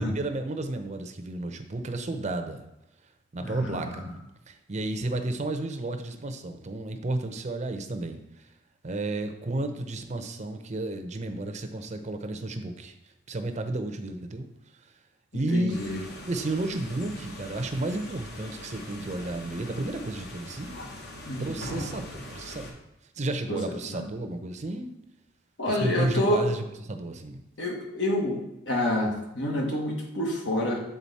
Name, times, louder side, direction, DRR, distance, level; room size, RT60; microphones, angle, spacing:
voice 1, 0.0-2.7 3.3-4.1 4.5-8.2 8.8-12.9 13.3-14.5 15.3-20.8 21.4-22.8 23.2-25.0 25.7-27.4, right 2 dB, 40° right, 7 dB, 0.6 m, -32 dB
voice 2, 3.4-4.0 15.3-16.0 21.3-21.5 23.9-24.0 25.6-26.5 27.6-28.4 28.7-30.8, left 1 dB, 80° left, 0 dB, 1.6 m, -28 dB
sound 1, 15.7-22.7, left 1 dB, 60° left, 1.3 m, -41 dB
8.5 x 3.9 x 4.1 m, 0.92 s
head